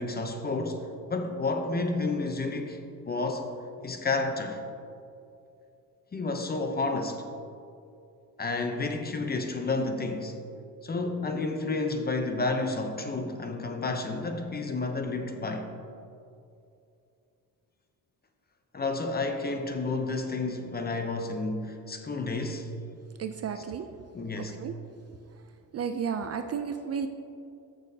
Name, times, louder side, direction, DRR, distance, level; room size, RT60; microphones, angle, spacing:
voice 1, 0.0-2.8 3.1-3.5 3.8-4.6 6.1-7.2 8.4-10.4 10.8-15.7 18.7-22.7 23.6-23.7 24.1-24.6, left 3 dB, 25° left, 5 dB, 0.7 m, -31 dB
voice 2, 23.2-23.9 24.6-24.7 25.7-27.1, right 7 dB, 40° right, 7 dB, 0.4 m, -32 dB
14.5 x 6.3 x 2.8 m, 2.6 s
cardioid pair, 135°, 38 cm